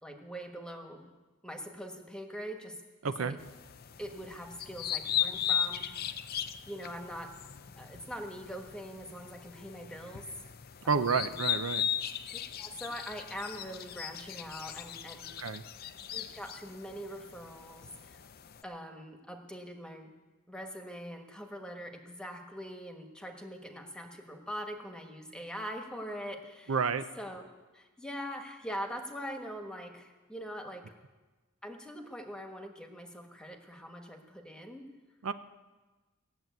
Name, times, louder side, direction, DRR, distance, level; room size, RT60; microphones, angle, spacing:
voice 1, 0.0-1.1 1.4-2.7 3.0-3.4 4.0-6.1 6.7-7.3 7.8-10.3 10.8-11.4 12.6-15.3 16.1-18.2 18.6-20.1 20.5-26.7 27.2-27.5 27.7-30.9 31.6-34.8, equal, 5° left, 4 dB, 1.4 m, -43 dB
voice 2, 3.0-3.4 10.9-11.9 15.4-15.6 26.7-27.0 35.2-35.3, right 5 dB, 80° right, 11 dB, 0.6 m, -30 dB
sound 1, 3.4-18.6, left 10 dB, 45° left, 0.5 m, -38 dB
17.0 x 7.6 x 9.2 m, 1.2 s
head